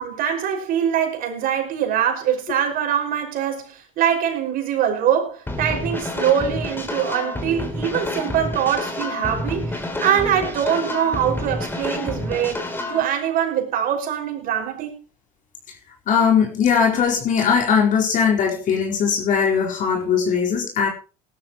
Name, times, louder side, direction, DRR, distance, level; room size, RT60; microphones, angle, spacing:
voice 1, 0.0-12.6 12.9-14.9, right 9 dB, 55° right, 5.5 m, -23 dB
sound 1, 5.5-13.0, left 1 dB, 10° left, 3.3 m, -29 dB
voice 2, 16.1-20.9, left 6 dB, 50° left, 4.4 m, -19 dB
18.5 x 12.5 x 3.0 m
supercardioid pair, 95°, 17 cm